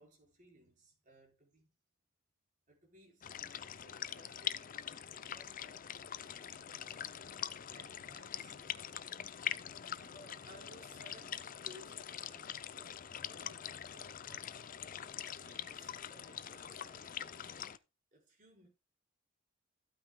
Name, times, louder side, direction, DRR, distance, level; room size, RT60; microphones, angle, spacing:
voice 1, 0.0-1.7 2.7-4.9 5.3-5.8 6.5-7.3 7.7-8.6 9.9-14.5 15.4-17.8 18.1-18.7, equal, 40° right, 4.4 m, -61 dB
sound 1, 3.2-17.8, left 9 dB, 40° left, 0.5 m, -44 dB
14.0 x 9.0 x 2.3 m
head